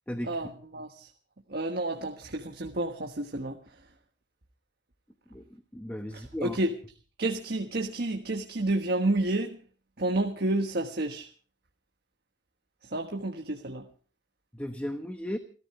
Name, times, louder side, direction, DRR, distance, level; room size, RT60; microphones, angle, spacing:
voice 1, 0.2-1.1 1.5-3.6 6.1-6.8 7.2-9.6 10.0-11.3 12.9-13.8, right 2 dB, 55° right, 4 dB, 1.4 m, -30 dB
voice 2, 5.7-6.6 14.5-15.4, equal, 10° left, 7 dB, 1.0 m, -35 dB
29.5 x 14.0 x 3.2 m, 0.40 s
head